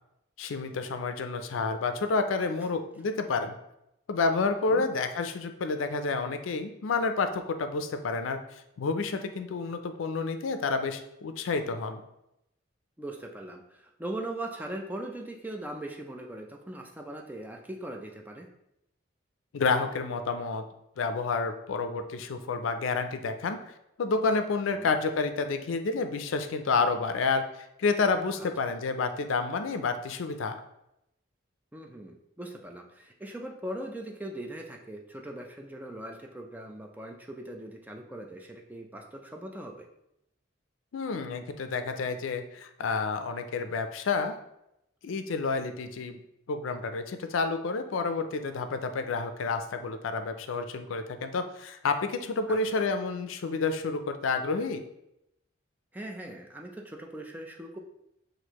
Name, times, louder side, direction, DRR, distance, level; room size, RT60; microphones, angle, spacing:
voice 1, 0.4-3.5 4.1-8.4 8.8-12.0 19.5-20.7 21.0-23.6 24.0-30.6 40.9-44.4 45.0-46.2 46.5-54.8, left 4 dB, 85° left, 8 dB, 0.4 m, -29 dB
voice 2, 13.0-18.5 24.7-24.9 28.4-28.5 31.7-39.9 52.5-52.7 55.9-57.8, right 1 dB, 10° right, 2 dB, 0.3 m, -40 dB
6.2 x 2.6 x 2.9 m, 0.83 s
head